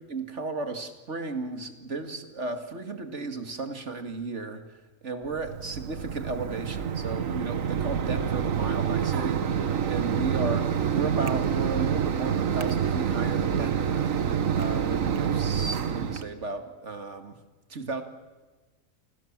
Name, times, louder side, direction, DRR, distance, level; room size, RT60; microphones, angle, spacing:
voice 1, 0.0-4.8 5.0-10.6 10.9-14.3 14.5-17.4 17.7-18.0, right 3 dB, 55° right, 7 dB, 2.5 m, -34 dB
Mechanisms, 5.3-16.2, right 8 dB, 70° right, 1.6 m, -27 dB
29.5 x 25.5 x 7.5 m, 1.3 s
omnidirectional pair, 1.4 m